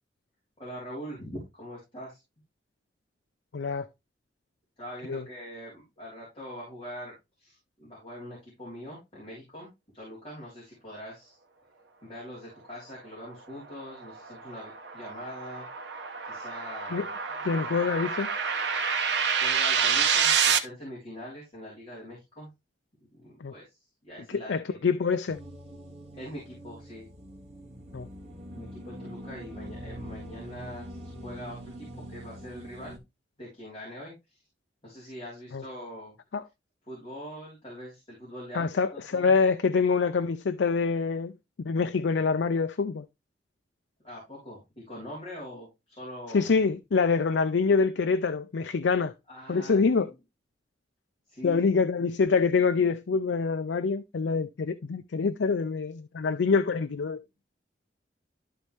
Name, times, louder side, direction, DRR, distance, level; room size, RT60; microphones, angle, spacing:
voice 1, 0.6-2.2 4.8-9.7 9.9-11.4 12.0-15.6 16.2-17.1 17.7-17.8 19.4-22.5 23.1-23.8 24.0-24.8 26.1-27.1 28.5-33.0 33.4-34.4 34.8-36.1 36.9-39.3 44.0-46.5 49.3-50.0 51.3-51.7, equal, 30° left, 3.6 m, -43 dB
voice 2, 3.5-3.9 5.1-5.2 16.9-17.1 17.4-18.3 23.4-23.5 24.3-25.4 27.9-28.1 35.5-35.6 36.3-36.4 38.5-41.3 41.6-43.1 46.3-49.1 49.5-50.1 51.4-57.2, left 5 dB, 85° left, 0.5 m, -25 dB
sound 1, 13.7-20.6, right 6 dB, 80° right, 1.0 m, -28 dB
sound 2, 25.3-33.0, equal, 35° right, 1.9 m, -43 dB
12.5 x 4.2 x 3.3 m
head